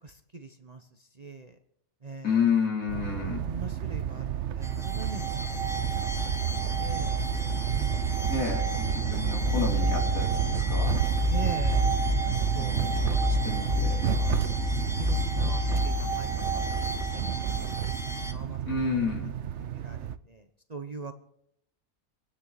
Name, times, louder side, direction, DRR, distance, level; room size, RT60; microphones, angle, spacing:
voice 1, 0.0-1.6 2.0-2.4 3.2-7.2 7.7-8.3 8.6-8.7 11.3-11.9 12.2-13.2 13.5-13.7 14.2-14.4 15.0-17.2 17.6-17.7 18.3-18.8 19.6-21.1, right 3 dB, 30° right, 6 dB, 1.0 m, -43 dB
voice 2, 2.2-3.5 8.3-11.1 12.5-14.0 18.6-19.3, left 5 dB, 70° left, -1 dB, 4.1 m, -30 dB
sound 1, 2.9-20.2, right 10 dB, 60° right, 0.9 m, -30 dB
sound 2, 4.6-18.3, left 1 dB, ahead, 1.1 m, -31 dB
27.5 x 9.8 x 4.2 m, 0.74 s
omnidirectional pair, 1.5 m